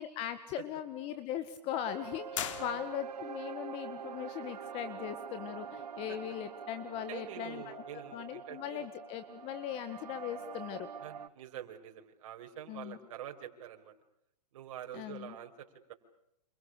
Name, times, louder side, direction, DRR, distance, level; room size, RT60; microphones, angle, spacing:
voice 1, 0.0-7.8 8.1-10.9 12.7-13.0 14.9-15.4, left 11 dB, 30° left, 11 dB, 1.9 m, -39 dB
sound 1, 1.8-11.3, right 7 dB, 75° right, 1.7 m, -45 dB
sound 2, 2.3-3.3, left 10 dB, 50° left, 3.3 m, -39 dB
voice 2, 7.1-8.9 11.0-13.9 14.5-15.9, right 10 dB, 50° right, 3 dB, 5.7 m, -46 dB
28.5 x 27.5 x 6.8 m, 0.79 s
hypercardioid pair, 145°, 21 cm